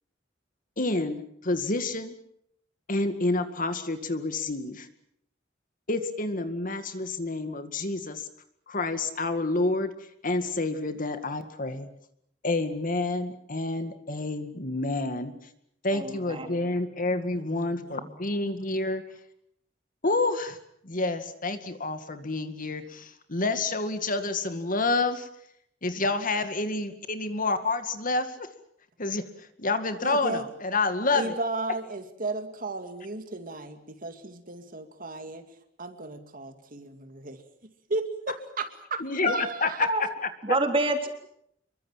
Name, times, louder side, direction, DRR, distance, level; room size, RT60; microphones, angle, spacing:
voice 1, 0.8-2.1 2.9-4.9 5.9-8.2 8.7-9.9 10.2-11.9 12.4-15.3 15.8-19.0 20.0-20.6 20.8-25.3 25.8-28.5 29.0-29.2 29.6-31.4 39.0-40.1, left 2 dB, 45° left, 9 dB, 2.1 m, -28 dB
voice 2, 15.9-16.5 39.8-40.0 40.4-41.1, right 2 dB, 30° right, 5 dB, 3.7 m, -27 dB
voice 3, 17.5-18.1 30.0-30.4 31.1-35.5 35.8-37.4 37.9-39.8, right 2 dB, 50° right, 7 dB, 2.4 m, -34 dB
27.0 x 23.0 x 7.5 m, 0.74 s
head